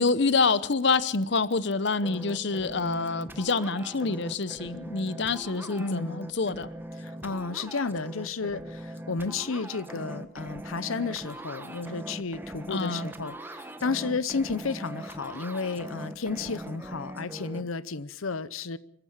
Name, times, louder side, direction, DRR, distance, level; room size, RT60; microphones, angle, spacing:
voice 1, 0.0-6.7 12.7-13.1, left 4 dB, 55° left, 0.8 m, -27 dB
sound 1, 2.0-17.6, right 1 dB, 10° right, 1.3 m, -41 dB
voice 2, 5.8-6.3 7.0-18.8, left 4 dB, 85° left, 0.8 m, -32 dB
25.5 x 15.0 x 7.3 m
head